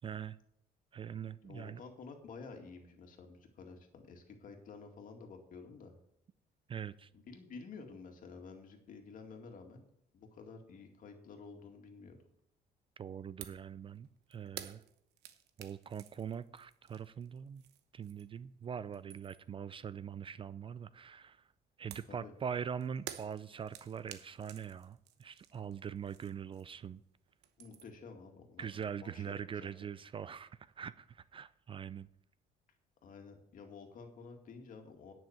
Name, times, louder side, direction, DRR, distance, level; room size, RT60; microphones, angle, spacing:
voice 1, 0.0-0.4 0.9-1.8 6.7-7.1 13.0-14.8 15.6-17.6 17.9-21.5 21.8-27.0 28.6-32.1, right 7 dB, 30° right, 0.3 m, -43 dB
voice 2, 1.4-5.9 7.1-9.8 10.1-12.2 22.1-22.3 27.6-28.7 29.0-29.3 29.6-29.7 33.0-35.1, left 4 dB, 55° left, 2.2 m, -51 dB
sound 1, 13.4-13.7 14.0-18.4 18.8-19.6 21.9-27.0 27.3-28.1, right 11 dB, 80° right, 1.0 m, -52 dB
10.0 x 6.2 x 7.2 m
cardioid pair, 110°, 17 cm